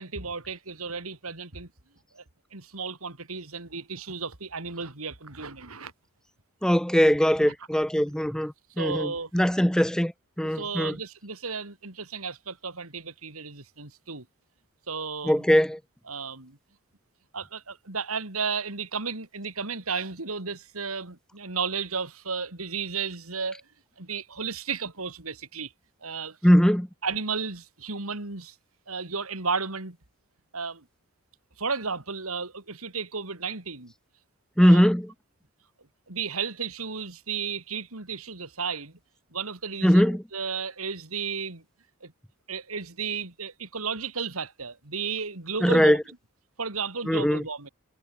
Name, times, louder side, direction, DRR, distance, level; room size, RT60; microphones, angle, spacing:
voice 1, 0.0-1.7 2.1-2.2 2.5-5.9 7.4-7.5 8.8-9.3 10.4-14.2 14.9-15.5 16.1-16.6 17.3-23.6 24.0-25.7 26.0-26.4 27.0-28.5 28.9-30.0 30.5-30.8 31.6-33.9 34.6-34.9 36.1-38.9 39.3-41.6 42.0-42.1 42.5-46.0 46.6-47.7, right 5 dB, 85° right, 3.3 m, -33 dB
voice 2, 6.6-10.1 10.4-11.0 15.2-15.8 26.4-26.9 34.6-35.1 39.8-40.2 45.6-46.0 47.1-47.4, equal, 5° left, 1.1 m, -21 dB
head